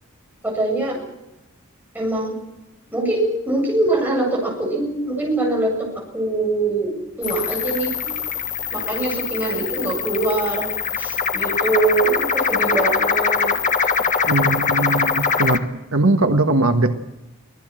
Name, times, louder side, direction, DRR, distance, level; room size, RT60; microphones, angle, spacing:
voice 1, 0.4-1.0 1.9-2.3 2.9-8.1 8.7-10.7 11.0-13.6, right 2 dB, 10° right, -1 dB, 7.7 m, -23 dB
sound 1, 7.2-15.6, left 6 dB, 35° left, 1.5 m, -22 dB
voice 2, 14.2-15.6 15.9-16.9, right 2 dB, 75° right, 6 dB, 1.5 m, -19 dB
25.0 x 17.5 x 7.6 m, 0.94 s
head